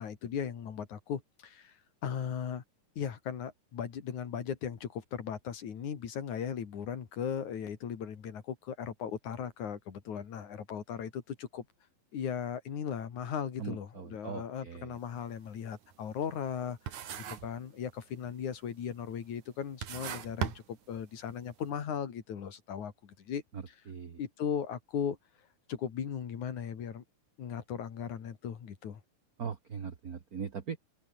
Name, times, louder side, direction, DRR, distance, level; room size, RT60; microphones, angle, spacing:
voice 1, 0.0-2.6 3.0-11.7 12.1-23.4 24.2-25.2 25.7-27.0 27.4-29.0, left 8 dB, 65° left, 3.8 m, -37 dB
voice 2, 13.6-15.0 23.5-24.2 29.4-30.8, right 6 dB, 45° right, 1.2 m, -40 dB
sound 1, 14.9-15.2 15.6-16.6 16.9-17.6 17.9-18.4 19.1-19.2 19.6-21.3, right 9 dB, 65° right, 3.3 m, -38 dB
omnidirectional pair, 3.7 m